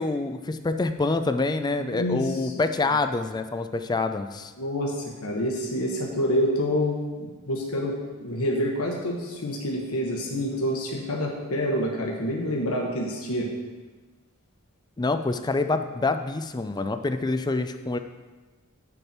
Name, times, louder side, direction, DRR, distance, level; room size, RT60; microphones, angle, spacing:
voice 1, 0.0-4.5 15.0-18.0, left 3 dB, 20° left, 9 dB, 0.4 m, -26 dB
voice 2, 1.8-2.5 4.6-13.5, equal, 75° left, -1 dB, 1.3 m, -27 dB
8.6 x 6.7 x 4.4 m, 1.3 s
head